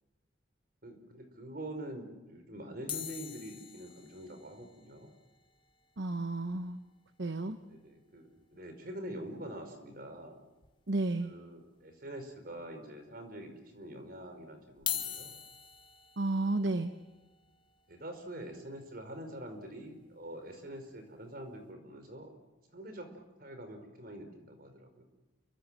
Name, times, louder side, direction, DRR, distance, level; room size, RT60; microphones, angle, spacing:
voice 1, 0.8-5.1 7.6-10.4 11.2-15.4 16.4-16.8 17.9-22.3 22.7-25.0, right 1 dB, 55° right, 7 dB, 5.0 m, -45 dB
sound 1, 2.9-7.2 7.5-7.6 7.8-8.0 8.4-8.5 9.8-9.9 10.6-11.1 11.6-11.7 12.6-12.7 14.7-20.8 21.3-21.6, left 9 dB, 25° left, 2.3 m, -44 dB
voice 2, 6.0-6.8 7.2-7.6 10.9-11.3 16.2-16.9, right 2 dB, 75° right, 9 dB, 1.1 m, -32 dB
29.0 x 24.5 x 7.7 m, 1.1 s
head